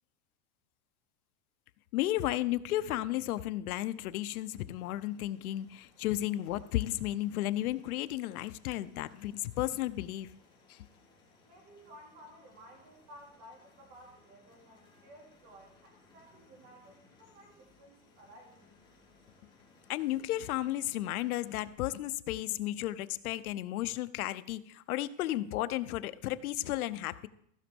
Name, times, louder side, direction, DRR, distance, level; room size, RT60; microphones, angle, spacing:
voice 1, 1.9-10.3 10.7-10.8 19.9-27.3, left 14 dB, 80° left, 14 dB, 0.7 m, -33 dB
sound 1, 3.7-21.7, left 3 dB, 10° left, 1.9 m, -64 dB
voice 2, 11.4-18.7, right 1 dB, 35° right, 0 dB, 3.0 m, -55 dB
15.0 x 6.0 x 5.3 m, 0.72 s
supercardioid pair, 180°, 43 cm